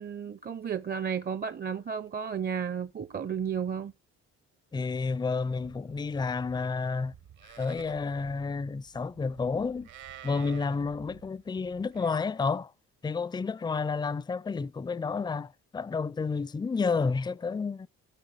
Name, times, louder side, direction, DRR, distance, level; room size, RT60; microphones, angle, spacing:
voice 1, 0.0-3.9, right 7 dB, 35° right, 0.6 m, -33 dB
voice 2, 4.7-7.1 7.5-9.9 10.2-12.7 13.0-17.9, left 4 dB, 15° left, 0.4 m, -30 dB
Livestock farm animals working animals, 5.5-12.1, right 10 dB, 75° right, 2.0 m, -52 dB
13.5 x 5.7 x 4.6 m
cardioid pair, 90°, 30 cm